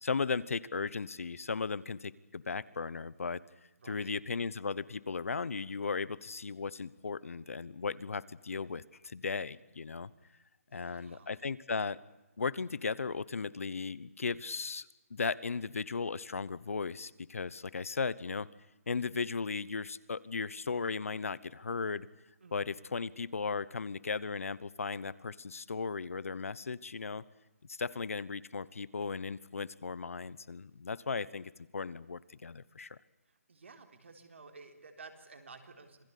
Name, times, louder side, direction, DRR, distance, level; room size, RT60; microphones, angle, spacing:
voice 1, 0.0-3.4 3.9-10.1 10.7-12.0 12.4-18.5 18.9-22.1 22.5-27.2 27.7-33.0, left 4 dB, 65° left, 19 dB, 1.1 m, -36 dB
voice 2, 3.8-4.1 10.7-11.3 22.4-22.6 33.3-36.0, right 4 dB, 50° right, 6 dB, 3.8 m, -53 dB
27.0 x 18.5 x 8.4 m, 0.99 s
hypercardioid pair, 180°, 8 cm